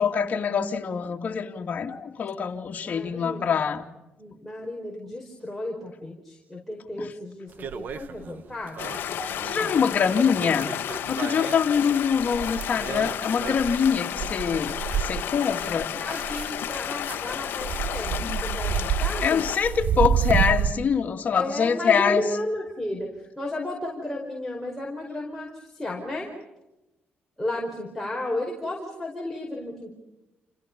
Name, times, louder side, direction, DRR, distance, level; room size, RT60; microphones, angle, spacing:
voice 1, 0.0-3.9 7.0-7.1 9.2-10.7 11.1-15.9 18.2-18.4 19.2-22.3, left 6 dB, 45° left, 3 dB, 2.6 m, -24 dB
voice 2, 2.8-3.6 4.2-8.9 9.6-9.9 15.8-19.4 21.3-26.3 27.4-29.9, left 1 dB, 5° left, -2 dB, 5.0 m, -33 dB
sound 1, 7.6-8.4 8.8-16.7 17.0-20.7, right 8 dB, 55° right, 1.3 m, -30 dB
Stream, 8.8-19.6, left 10 dB, 75° left, 1.2 m, -32 dB
30.0 x 29.0 x 5.5 m, 0.97 s
cardioid pair, 125°, 4 cm